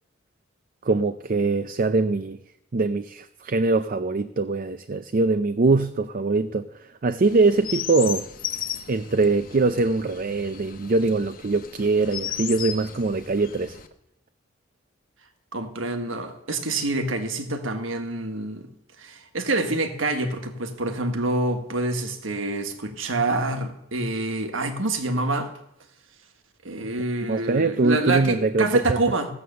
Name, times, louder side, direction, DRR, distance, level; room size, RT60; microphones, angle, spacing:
voice 1, 0.8-2.4 2.7-6.7 7.0-8.3 8.9-13.8 27.3-29.0, right 3 dB, 45° right, 0.5 m, -22 dB
Chirp tweet, 7.2-13.9, left 9 dB, 50° left, 1.1 m, -35 dB
voice 2, 15.5-18.7 19.0-25.5 26.6-29.3, right 2 dB, 85° right, 1.5 m, -27 dB
16.0 x 8.0 x 6.8 m
head